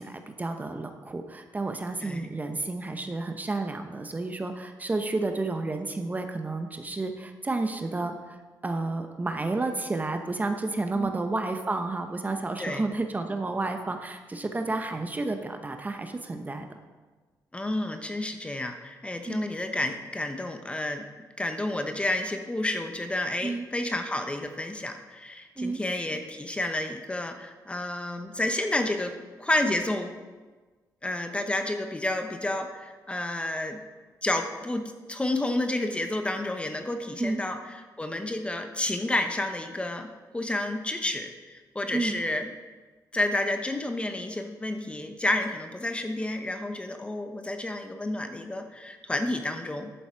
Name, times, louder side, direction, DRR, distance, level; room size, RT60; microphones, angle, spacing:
voice 1, 0.0-16.7 19.3-19.4 23.4-23.7 25.6-25.8 37.2-37.4 41.9-42.2, right 2 dB, 25° right, 6 dB, 0.9 m, -31 dB
voice 2, 17.5-21.0 21.4-30.1 31.0-33.8 34.2-37.6 38.0-42.5 43.1-49.9, left 1 dB, 15° left, 6 dB, 1.0 m, -30 dB
11.0 x 7.1 x 4.6 m, 1.3 s
cardioid pair, 85°, 7 cm